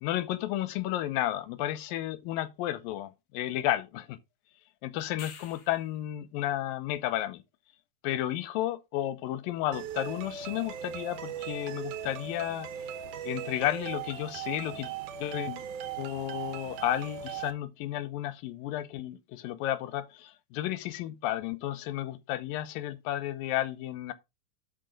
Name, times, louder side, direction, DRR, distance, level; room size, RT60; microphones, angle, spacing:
voice 1, 0.0-4.2 4.8-7.4 8.0-12.7 13.2-14.9 15.2-15.6 16.0-24.1, left 13 dB, 85° left, 2.6 m, -32 dB
sound 1, 5.0-6.0 10.6-10.7, left 6 dB, 50° left, 2.4 m, -47 dB
sound 2, 9.7-17.5, right 9 dB, 70° right, 2.5 m, -39 dB
12.0 x 4.5 x 5.1 m
omnidirectional pair, 3.9 m